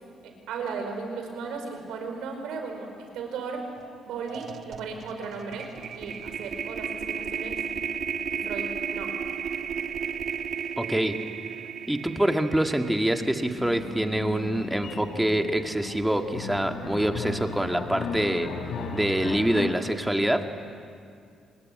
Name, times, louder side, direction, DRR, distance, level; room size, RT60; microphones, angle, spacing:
voice 1, 0.2-2.9 3.1-3.6 4.0-5.7 5.9-7.6 8.3-9.1, right 5 dB, 85° right, 4 dB, 5.0 m, -36 dB
sound 1, 3.8-3.9 4.2-14.5, right 7 dB, 60° right, 1.4 m, -34 dB
voice 2, 10.8-11.2 11.9-18.5 18.9-20.5, right 1 dB, 5° right, 5 dB, 1.9 m, -25 dB
sound 2, 13.6-19.8, left 5 dB, 70° left, 3.3 m, -36 dB
26.5 x 20.5 x 9.5 m, 2.3 s
cardioid pair, 90°, 0 cm